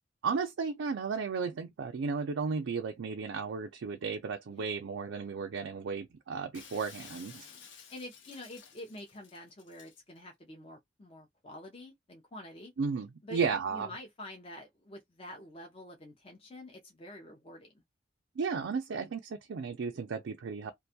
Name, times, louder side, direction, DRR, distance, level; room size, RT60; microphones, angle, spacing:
voice 1, 0.2-7.5 12.8-13.9 18.4-20.7, right 5 dB, 85° right, 0.4 m, -34 dB
Shatter, 6.5-10.0, left 6 dB, 75° left, 0.7 m, -53 dB
voice 2, 7.3-12.7 13.2-17.8, left 1 dB, 30° left, 0.5 m, -48 dB
2.5 x 2.2 x 2.7 m
head